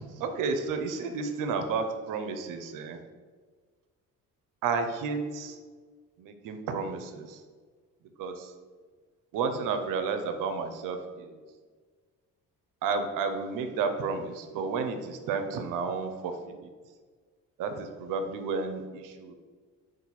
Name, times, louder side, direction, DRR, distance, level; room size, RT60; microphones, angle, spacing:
voice 1, 0.2-3.0 4.6-5.6 6.2-7.4 8.2-8.5 9.3-11.4 12.8-16.7 17.6-19.3, right 5 dB, 70° right, 7 dB, 0.6 m, -32 dB
4.0 x 2.6 x 4.0 m, 1.5 s
cardioid pair, 80°, 34 cm